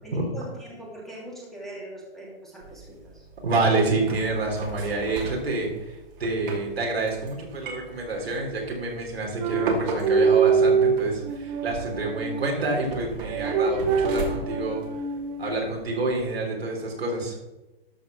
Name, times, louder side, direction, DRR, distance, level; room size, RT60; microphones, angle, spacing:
voice 1, 0.0-3.3, right 1 dB, ahead, -5 dB, 2.7 m, -41 dB
sound 1, 2.6-16.2, right 2 dB, 60° right, 2.8 m, -38 dB
voice 2, 3.4-14.8 15.4-17.4, right 3 dB, 80° right, 0 dB, 3.6 m, -28 dB
sound 2, 9.4-12.5 13.3-15.5, right 5 dB, 35° right, 1.1 m, -24 dB
12.5 x 4.6 x 6.1 m, 1.0 s
hypercardioid pair, 135°, 30 cm